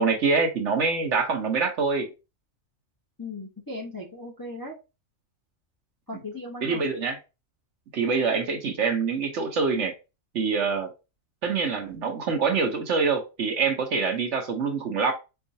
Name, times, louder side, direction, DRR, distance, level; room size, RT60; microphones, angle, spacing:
voice 1, 0.0-2.1 6.6-7.2 7.9-9.9 10.3-10.9 11.4-15.1, right 5 dB, 60° right, 1.0 m, -25 dB
voice 2, 3.2-4.8 6.1-6.9, left 2 dB, 20° left, 0.7 m, -37 dB
4.6 x 2.4 x 2.6 m
omnidirectional pair, 1.4 m